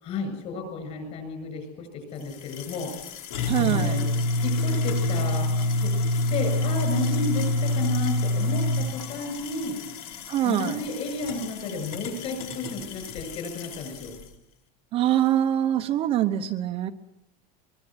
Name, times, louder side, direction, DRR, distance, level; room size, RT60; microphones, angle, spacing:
voice 1, 0.0-2.9 3.6-4.1 4.4-5.5 5.8-5.9 6.3-9.8 10.4-14.2, left 3 dB, 35° left, 7 dB, 7.6 m, -32 dB
sound 1, 2.2-14.2, left 1 dB, 75° left, 4.5 m, -28 dB
voice 2, 3.5-4.0 10.3-10.8 14.9-16.9, right 11 dB, 30° right, 7 dB, 1.0 m, -24 dB
23.5 x 23.0 x 8.1 m, 0.82 s
cardioid pair, 175°, 19 cm